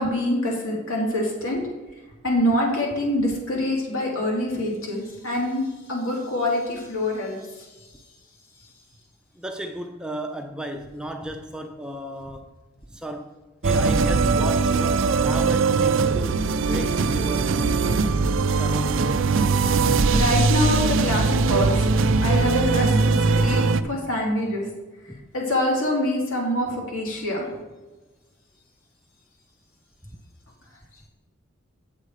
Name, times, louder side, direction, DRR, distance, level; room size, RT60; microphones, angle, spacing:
voice 1, 0.0-1.6 2.2-7.7 20.1-21.9 22.2-22.9 23.3-24.7 25.0-27.5, left 1 dB, 75° left, -3 dB, 3.1 m, -25 dB
voice 2, 9.3-12.6 12.9-13.3 13.6-18.1 18.5-19.0 25.1-25.2, equal, 5° right, 5 dB, 0.5 m, -34 dB
sound 1, 13.6-23.8, right 4 dB, 65° right, 0.4 m, -21 dB
8.5 x 7.5 x 4.9 m, 1.2 s
head